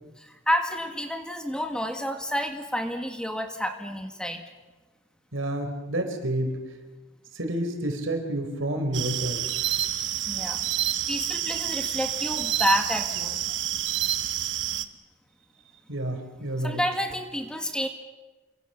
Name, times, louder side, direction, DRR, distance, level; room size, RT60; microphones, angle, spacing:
voice 1, 0.2-4.4 10.3-13.4 16.6-17.9, equal, 5° left, 6 dB, 1.8 m, -29 dB
voice 2, 5.3-6.6 7.3-9.4 15.9-16.8, right 1 dB, 90° right, 5 dB, 4.5 m, -29 dB
sound 1, 8.9-14.9, right 12 dB, 65° right, 1.3 m, -28 dB
27.5 x 24.5 x 7.1 m, 1.2 s
head